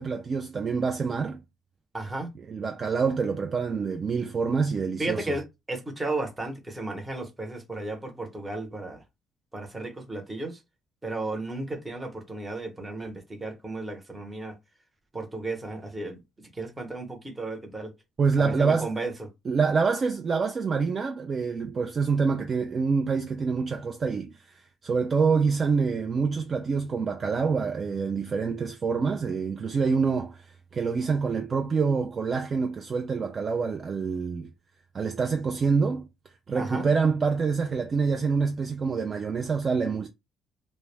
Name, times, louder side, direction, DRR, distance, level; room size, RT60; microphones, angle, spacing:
voice 1, 0.0-1.4 2.5-5.4 18.2-18.9 19.5-30.4 30.7-34.5 34.9-36.1 36.5-40.1, right 5 dB, 35° right, 0.3 m, -26 dB
voice 2, 1.9-2.3 5.0-9.0 9.5-10.6 11.0-14.5 15.1-17.9 18.4-19.3 36.5-36.9, right 2 dB, 15° right, 0.8 m, -34 dB
2.2 x 2.0 x 3.1 m
cardioid pair, 115°, 0 cm